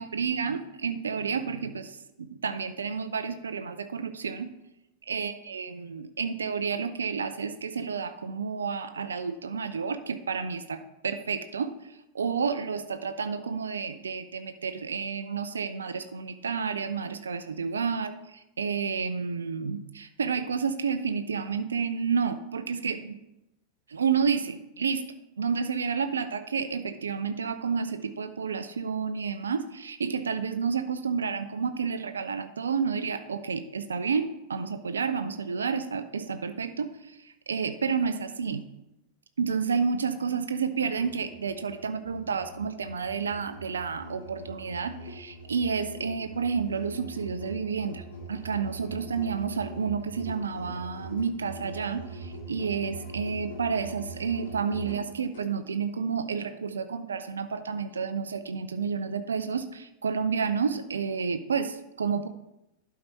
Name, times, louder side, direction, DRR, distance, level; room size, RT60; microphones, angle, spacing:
voice 1, 0.0-4.5 5.1-23.2 23.9-25.0 25.4-38.6 39.4-48.0 48.3-62.3, right 6 dB, 70° right, 10 dB, 0.5 m, -30 dB
Musical instrument, 41.0-55.5, right 1 dB, 60° left, 2.2 m, -42 dB
11.5 x 4.7 x 4.1 m, 0.91 s
figure-of-eight pair, 90°, 0 cm